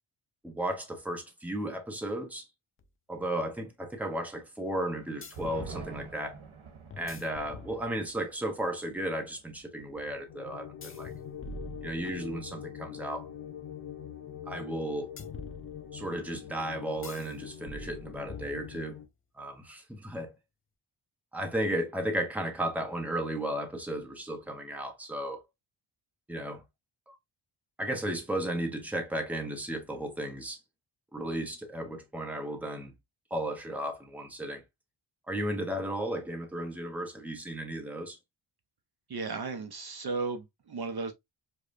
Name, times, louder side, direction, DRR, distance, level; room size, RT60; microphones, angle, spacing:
voice 1, 0.4-2.5 3.1-6.4 7.0-11.1 11.8-13.3 14.5-15.1 15.9-19.0 19.4-20.3 21.3-25.4 26.3-26.6 27.1-27.2 27.8-30.6 31.1-32.9 33.3-34.6 35.3-38.2, right 1 dB, 5° right, 0.7 m, -34 dB
sound 1, 2.8-2.9 5.2-5.8 6.9-8.2 10.8-12.5 15.2-16.2 17.0-17.3 17.7-19.0, left 2 dB, 30° left, 0.4 m, -45 dB
sound 2, 4.8-11.7 12.0-12.1 12.5-12.9, right 4 dB, 90° right, 1.1 m, -49 dB
sound 3, 10.3-19.1, left 9 dB, 60° left, 0.9 m, -44 dB
voice 2, 39.1-41.1, right 4 dB, 55° right, 0.5 m, -35 dB
4.8 x 2.2 x 2.4 m
wide cardioid pair, 140°, 48 cm